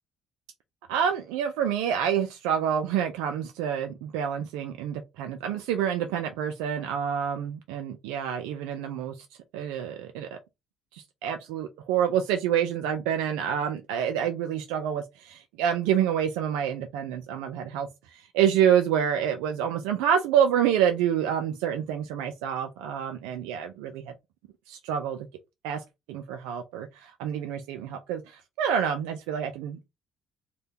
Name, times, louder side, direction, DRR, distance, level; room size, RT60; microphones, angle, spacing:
voice 1, 0.9-9.3 9.5-10.4 10.9-24.1 24.7-25.3 25.6-29.8, right 9 dB, 90° right, 0.3 m, -27 dB
2.7 x 2.2 x 3.4 m
supercardioid pair, 75°, 0 cm